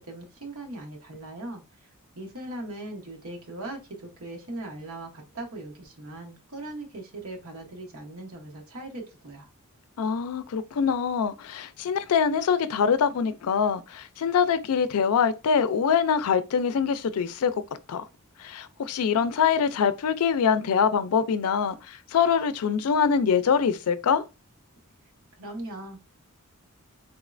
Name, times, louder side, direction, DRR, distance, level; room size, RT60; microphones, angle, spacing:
voice 1, 0.1-1.6 2.1-9.5 25.4-26.0, right 2 dB, 70° right, 1.0 m, -39 dB
voice 2, 10.0-17.5 17.9-18.1 18.4-24.2, left 6 dB, 85° left, 0.4 m, -24 dB
3.6 x 3.1 x 2.5 m
head